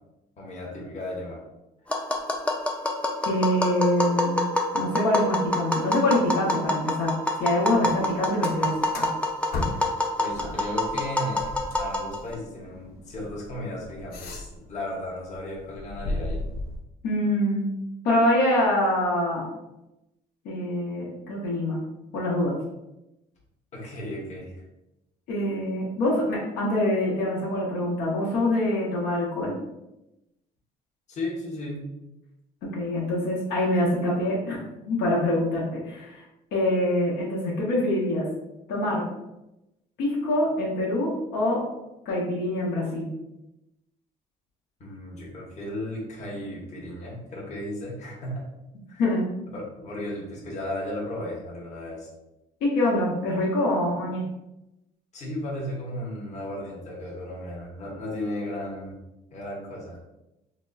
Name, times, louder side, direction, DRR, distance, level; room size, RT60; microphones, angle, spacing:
voice 1, 0.4-1.4 10.2-16.4 23.7-24.6 31.1-31.8 44.8-48.5 48.9-49.0 49.5-52.1 55.1-59.0 59.3-60.1, left 1 dB, 45° left, -3 dB, 1.0 m, -35 dB
Tap, 1.9-12.3, left 1 dB, 5° left, 0.4 m, -27 dB
voice 2, 3.2-4.4 4.7-9.1 10.4-10.5 17.0-17.7 18.0-19.4 20.4-21.8 22.1-22.6 25.3-29.5 32.6-34.6 34.9-36.2 36.5-38.3 38.7-39.0 40.0-41.6 42.0-43.1 49.0-49.3 52.6-54.2, left 1 dB, 85° left, -5 dB, 0.9 m, -25 dB
sound 1, 7.7-10.0 10.3-14.8 15.2-16.8, left 2 dB, 65° left, 0.5 m, -36 dB
4.0 x 2.0 x 2.3 m, 0.92 s
cardioid pair, 110°, 17 cm